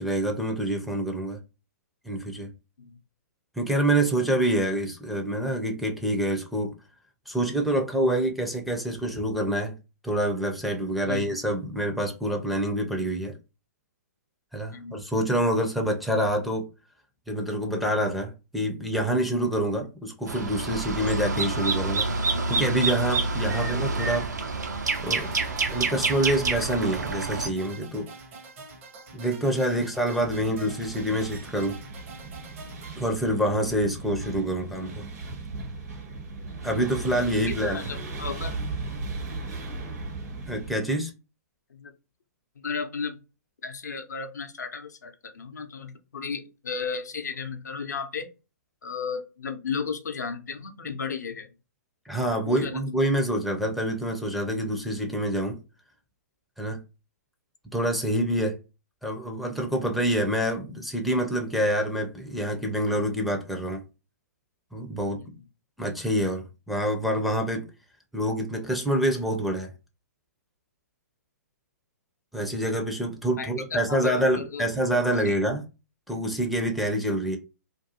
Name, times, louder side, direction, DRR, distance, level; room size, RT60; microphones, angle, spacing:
voice 1, 0.0-1.4 2.1-2.5 3.6-6.7 7.3-9.7 10.0-13.4 14.5-16.7 17.3-22.1 22.5-24.3 25.0-28.1 29.1-31.8 33.0-35.0 36.6-37.8 40.4-41.1 52.1-55.6 56.6-56.8 57.7-58.6 59.0-63.8 64.7-65.2 65.8-67.7 68.1-69.7 72.3-75.6 76.1-77.4, right 1 dB, ahead, 0.4 m, -26 dB
sound 1, 20.3-27.5, right 3 dB, 80° right, 0.6 m, -27 dB
sound 2, 24.9-32.9, right 4 dB, 45° right, 0.7 m, -46 dB
sound 3, 30.2-40.7, right 3 dB, 65° right, 1.2 m, -37 dB
voice 2, 37.5-38.6 39.4-39.5 41.7-41.9 42.6-43.2 43.6-48.3 48.8-51.5 52.4-52.8 65.2-65.3 73.4-75.0 75.3-75.4, left 5 dB, 75° left, 0.5 m, -34 dB
2.5 x 2.2 x 2.7 m
hypercardioid pair, 125°, 9 cm